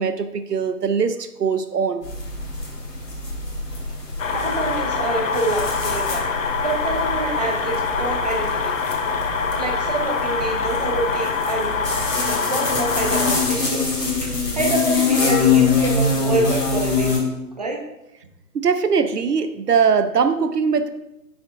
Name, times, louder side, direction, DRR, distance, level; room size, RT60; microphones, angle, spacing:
voice 1, 0.0-2.0 18.5-20.9, right 6 dB, 75° right, 10 dB, 0.8 m, -21 dB
sound 1, 2.0-17.2, left 4 dB, 75° left, 2.2 m, -25 dB
sound 2, 4.2-13.6, left 5 dB, 55° left, 0.7 m, -25 dB
voice 2, 4.3-6.3 6.6-8.9 9.6-11.8 12.2-13.9 14.2-17.3 17.5-17.8, right 2 dB, 25° right, 1 dB, 0.7 m, -26 dB
6.2 x 6.2 x 3.6 m, 0.90 s
figure-of-eight pair, 140°, 48 cm